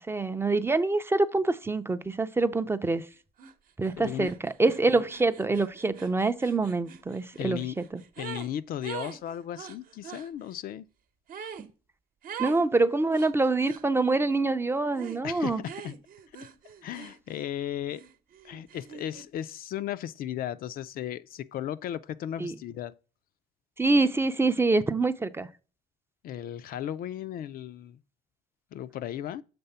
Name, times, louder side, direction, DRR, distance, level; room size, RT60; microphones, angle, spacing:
voice 1, 0.1-3.1 3.8-7.6 7.9-8.0 11.6-11.7 12.4-15.6 22.4-22.5 23.8-25.5, right 3 dB, 15° right, 0.4 m, -25 dB
sound 1, 3.4-3.5 3.8-8.5 8.8-10.3 11.3-11.7 12.2-12.6 13.1-13.9 14.9-15.2 15.6-17.5 17.9-19.3, right 7 dB, 55° right, 0.9 m, -43 dB
voice 2, 4.0-4.3 7.4-7.8 8.2-10.9 15.2-15.9 16.8-18.0 18.4-22.9 26.2-28.0 28.7-29.4, left 11 dB, 60° left, 0.4 m, -35 dB
6.9 x 3.3 x 5.5 m
cardioid pair, 110°, 17 cm